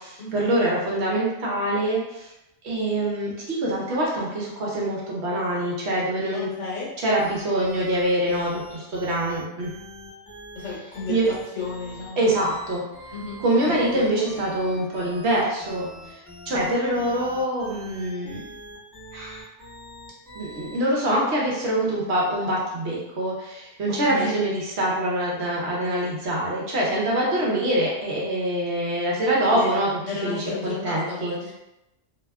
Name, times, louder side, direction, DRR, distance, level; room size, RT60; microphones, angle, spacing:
voice 1, 0.3-2.0 2.6-6.5 7.0-8.6 8.9-9.7 11.1-11.3 12.2-12.8 13.4-15.9 16.5-18.4 19.1-19.3 20.4-23.3 23.8-29.9 30.2-31.3, right 1 dB, 65° right, -4 dB, 0.9 m, -24 dB
voice 2, 6.3-6.9 10.5-11.2 11.5-12.3 13.1-13.4 13.7-14.2 23.9-24.4 26.9-27.3 29.5-31.5, left 4 dB, 80° left, -6 dB, 1.2 m, -33 dB
sound 1, 7.1-20.9, equal, ahead, 1.0 m, -43 dB
2.7 x 2.2 x 2.2 m, 0.92 s
omnidirectional pair, 1.3 m